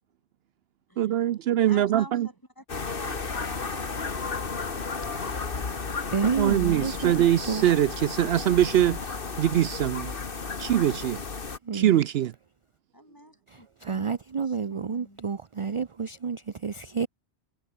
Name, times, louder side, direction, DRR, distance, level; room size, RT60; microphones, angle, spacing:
voice 1, 1.0-2.3 6.4-10.1 10.6-11.2 11.7-12.3, right 12 dB, 75° right, 0.8 m, -23 dB
voice 2, 1.7-2.6 3.0-5.9 12.9-15.2, equal, 20° left, 7.1 m, -48 dB
sound 1, 2.7-11.6, left 4 dB, 60° left, 1.8 m, -33 dB
voice 3, 5.1-5.5 6.1-7.6 11.6-12.0 13.5-17.1, right 5 dB, 35° right, 0.7 m, -30 dB
omnidirectional pair, 1.1 m